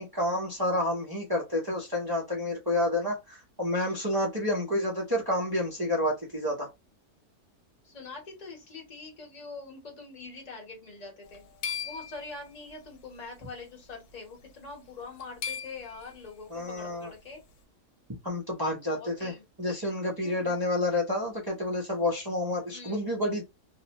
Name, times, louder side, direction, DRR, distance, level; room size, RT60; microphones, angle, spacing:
voice 1, 0.0-6.7 16.5-17.1 18.2-19.3 19.6-23.4, left 1 dB, 30° right, 0.4 m, -29 dB
voice 2, 7.8-11.5 11.8-17.4 18.8-19.4 20.2-20.6 22.7-23.1, left 3 dB, 30° left, 0.9 m, -44 dB
sound 1, 11.2-12.9 13.9-14.1 14.5-14.6 15.0-16.2, left 7 dB, 80° left, 1.1 m, -38 dB
2.6 x 2.0 x 2.8 m
omnidirectional pair, 1.6 m